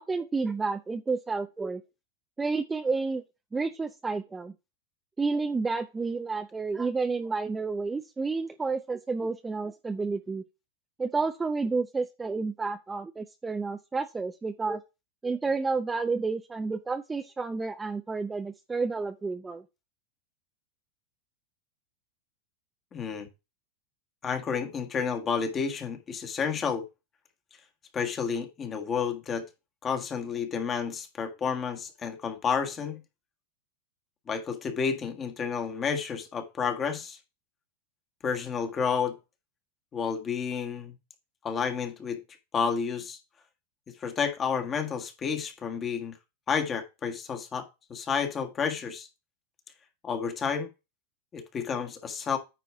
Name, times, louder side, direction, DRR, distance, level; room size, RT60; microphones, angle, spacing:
voice 1, 0.0-1.8 2.4-3.2 3.5-4.5 5.2-10.4 11.0-14.8 15.2-19.6, right 4 dB, 15° right, 0.6 m, -30 dB
voice 2, 22.9-23.3 24.2-26.8 27.9-29.4 29.8-33.0 34.3-37.2 38.2-39.1 39.9-40.9 41.4-42.2 42.5-43.2 44.0-46.1 46.5-49.1 50.0-50.7 51.3-52.4, left 6 dB, 25° left, 1.6 m, -30 dB
9.3 x 4.2 x 4.8 m
supercardioid pair, 130°, 0 cm